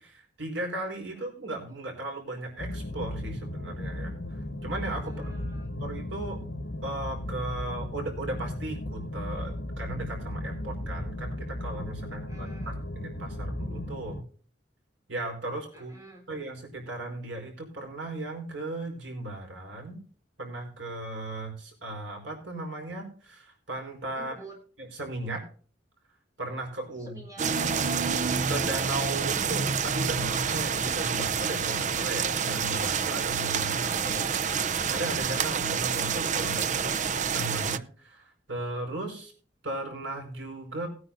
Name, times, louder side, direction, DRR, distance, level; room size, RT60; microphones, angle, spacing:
voice 1, 0.0-5.3 5.8-6.4 6.8-14.2 15.1-16.0 16.3-20.0 20.4-24.3 24.8-25.4 26.4-27.1 28.5-33.9 34.9-37.0 37.3-39.3 39.6-40.9, right 2 dB, 90° right, 2 dB, 4.8 m, -36 dB
voice 2, 1.1-1.4 5.1-5.7 12.1-12.8 15.7-16.2 24.2-24.6 26.9-28.1 33.8-34.7, right 1 dB, 20° right, 1 dB, 3.7 m, -47 dB
sound 1, 2.6-14.2, left 1 dB, 80° left, 1.4 m, -35 dB
sound 2, 27.4-37.8, right 6 dB, 40° right, 0.5 m, -28 dB
20.0 x 9.7 x 2.6 m, 0.42 s
head